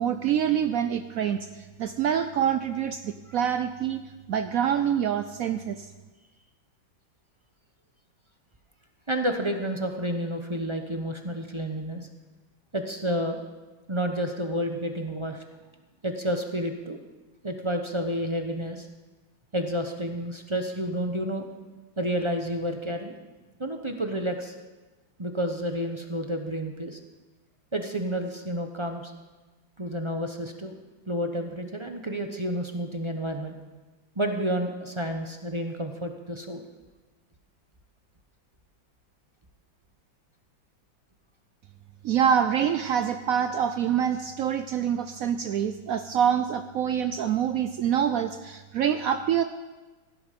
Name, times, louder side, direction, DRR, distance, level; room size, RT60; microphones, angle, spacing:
voice 1, 0.0-4.0 4.3-5.9 42.0-49.4, right 8 dB, 85° right, 9 dB, 0.7 m, -26 dB
voice 2, 9.1-12.1 12.7-13.4 13.9-15.4 16.0-17.0 17.4-18.9 19.5-21.5 22.0-23.2 23.6-24.5 25.2-27.0 27.7-29.1 29.8-33.5 34.2-36.7, equal, 35° right, 4 dB, 0.5 m, -30 dB
17.0 x 11.5 x 5.2 m, 1.2 s
omnidirectional pair, 2.1 m